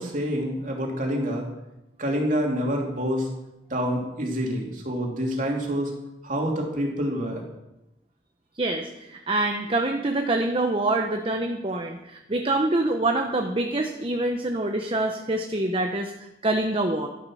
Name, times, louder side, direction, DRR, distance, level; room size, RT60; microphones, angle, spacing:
voice 1, 0.0-1.5 2.0-3.3 3.7-5.9 6.2-7.4, equal, 45° right, 0 dB, 2.9 m, -27 dB
voice 2, 8.6-17.1, right 2 dB, 30° right, 4 dB, 0.9 m, -26 dB
12.5 x 11.0 x 6.3 m, 0.94 s
head